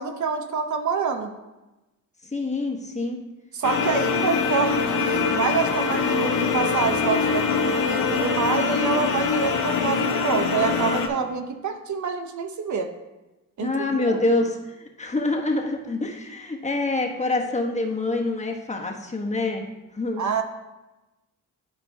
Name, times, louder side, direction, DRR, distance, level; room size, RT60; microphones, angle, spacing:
voice 1, 0.0-1.3 3.5-12.9 13.6-13.7 14.1-14.2 20.2-20.4, right 5 dB, 60° right, 6 dB, 0.8 m, -26 dB
voice 2, 2.2-3.2 13.6-19.6 19.9-20.3, left 2 dB, 20° left, 1 dB, 1.0 m, -26 dB
sound 1, 3.6-11.1, left 5 dB, 90° left, 0.8 m, -23 dB
13.0 x 4.4 x 2.7 m, 1.0 s
cardioid pair, 90°, 32 cm